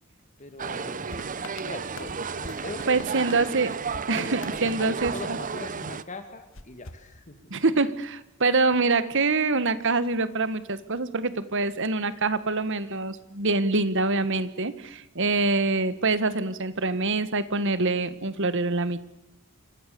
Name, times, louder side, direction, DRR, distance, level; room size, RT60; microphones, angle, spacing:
voice 1, 0.4-1.3 1.6-3.3 4.1-7.5, left 2 dB, 35° left, 8 dB, 2.4 m, -41 dB
sound 1, 0.6-6.0, right 5 dB, 40° right, 0.9 m, -33 dB
sound 2, 1.1-6.0 6.5-7.8, left 3 dB, 65° left, 1.7 m, -45 dB
voice 2, 2.9-3.7 4.1-5.1 7.5-19.0, right 3 dB, 60° right, 14 dB, 1.6 m, -25 dB
28.0 x 24.5 x 6.9 m, 0.91 s
head